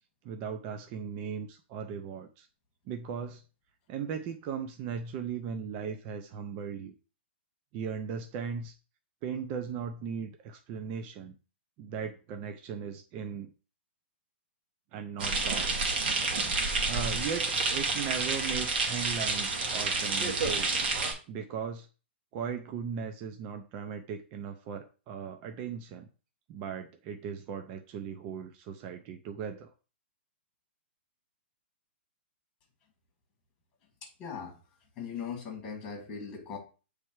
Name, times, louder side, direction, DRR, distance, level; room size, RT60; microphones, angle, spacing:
voice 1, 0.2-2.5 2.9-3.4 3.9-6.9 7.7-8.7 9.2-11.3 11.8-13.5 14.9-15.7 16.8-20.7 21.3-21.9 22.3-26.1 26.5-29.7, right 7 dB, 25° right, 0.5 m, -37 dB
sound 1, 15.2-21.1, right 3 dB, 55° right, 1.9 m, -29 dB
voice 2, 34.0-34.6 35.0-36.6, left 6 dB, 15° left, 1.7 m, -39 dB
8.2 x 3.3 x 4.6 m
hypercardioid pair, 165°, 6 cm